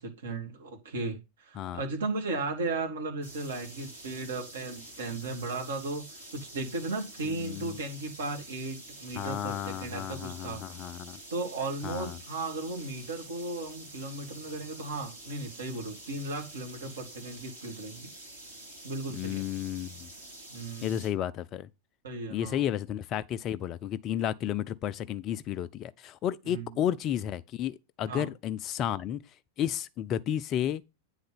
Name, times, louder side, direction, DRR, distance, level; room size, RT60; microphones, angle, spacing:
voice 1, 0.0-10.6 11.3-18.1 18.8-19.4 20.5-21.0 22.0-22.6 26.5-26.8 28.1-28.3, right 3 dB, 65° right, 2.4 m, -36 dB
sound 1, 3.2-21.1, right 1 dB, 80° right, 3.3 m, -48 dB
voice 2, 7.2-7.8 9.1-11.2 11.8-12.2 19.1-20.1 20.8-21.7 22.3-29.2 29.6-30.8, left 10 dB, 35° left, 0.5 m, -32 dB
9.0 x 3.9 x 5.3 m
figure-of-eight pair, 90°, 0 cm